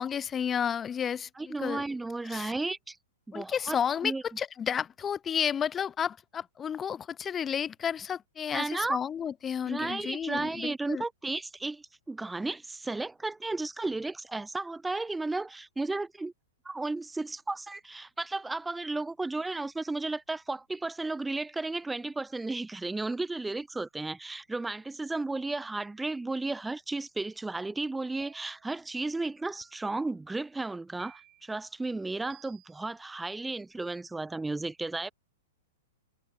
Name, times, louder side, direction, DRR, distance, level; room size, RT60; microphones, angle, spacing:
voice 1, 0.0-1.8 2.3-2.5 3.3-11.0, left 8 dB, 20° left, 0.9 m, -32 dB
voice 2, 1.4-3.0 3.3-3.8 4.0-4.2 8.5-9.0 9.7-16.3 16.6-35.1, right 3 dB, 5° right, 0.8 m, -34 dB
sound 1, 28.2-28.8 29.6-30.2 31.0-31.6 32.3-32.9, right 16 dB, 35° right, 5.4 m, -58 dB
figure-of-eight pair, 105°, 0 cm